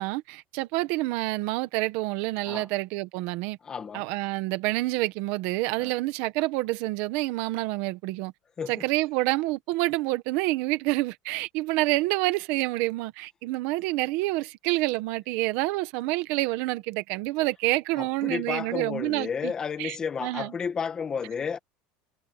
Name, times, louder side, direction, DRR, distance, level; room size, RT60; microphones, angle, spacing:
voice 1, 0.0-3.6 3.9-8.3 8.7-19.5 19.8-20.5, right 19 dB, 55° right, 1.4 m, -28 dB
voice 2, 3.6-4.1 5.8-5.9 8.6-8.8 18.0-21.6, left 6 dB, 20° left, 1.9 m, -32 dB
cardioid pair, 170°, 4 cm